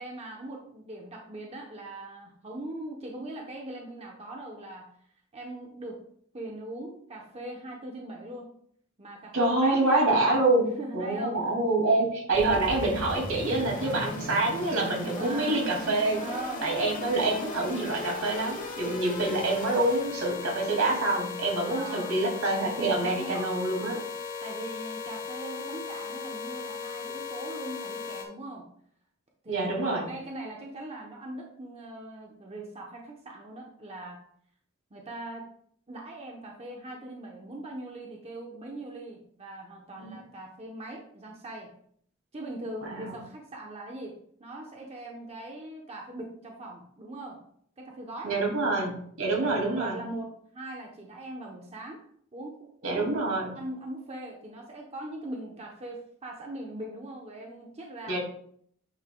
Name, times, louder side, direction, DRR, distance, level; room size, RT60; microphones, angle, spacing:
voice 1, 0.0-4.9 5.3-6.0 6.3-8.5 9.0-10.1 10.8-11.4 13.7-14.1 15.2-15.7 16.1-16.7 18.8-19.0 21.7-22.1 23.0-23.5 24.4-28.7 29.4-34.2 34.9-35.4 35.9-41.7 42.3-44.1 44.4-47.4 47.8-48.4 49.2-52.0 52.3-53.3 53.6-58.2, right 1 dB, 30° right, 0 dB, 0.9 m, -40 dB
voice 2, 9.3-16.2 16.6-24.0 29.5-30.1 40.0-40.2 42.8-43.2 48.2-50.0 52.8-53.5 58.1-58.2, right 2 dB, 80° right, -1 dB, 2.4 m, -26 dB
sound 1, 12.3-28.2, left 3 dB, 40° left, 1.1 m, -37 dB
9.1 x 5.6 x 2.3 m, 0.64 s
head